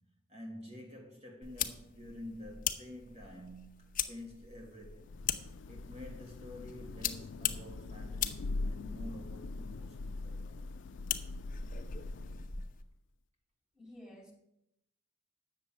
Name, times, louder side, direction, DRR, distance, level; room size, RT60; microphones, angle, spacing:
voice 1, 0.3-5.2 5.7-10.6, left 1 dB, 35° right, 1.7 m, -49 dB
sound 1, 1.4-12.8, left 9 dB, 45° left, 0.8 m, -41 dB
Thunder / Rain, 4.8-12.8, left 3 dB, 80° left, 0.4 m, -42 dB
voice 2, 13.7-14.3, left 1 dB, 5° right, 2.4 m, -51 dB
8.9 x 6.7 x 8.3 m
head